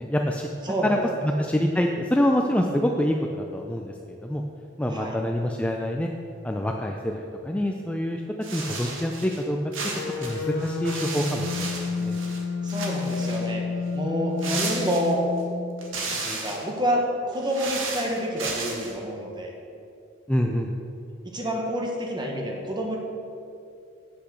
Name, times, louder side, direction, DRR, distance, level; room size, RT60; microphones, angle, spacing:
voice 1, 0.0-0.5 0.8-4.4 4.8-6.1 6.4-8.2 8.5-9.6 10.2-12.2 20.3-20.7, equal, 5° left, 2 dB, 0.4 m, -26 dB
voice 2, 0.6-1.0 4.9-5.2 12.6-13.6 13.9-15.2 16.1-19.5 21.2-23.0, equal, 20° right, 0 dB, 1.3 m, -28 dB
sound 1, 8.4-9.4 9.7-12.4 12.7-13.5 14.4-15.4 15.8-16.7 17.3-18.9, right 3 dB, 75° right, 1.5 m, -34 dB
sound 2, 9.9-16.0, left 4 dB, 65° left, 0.9 m, -30 dB
8.1 x 5.9 x 6.3 m, 2.6 s
head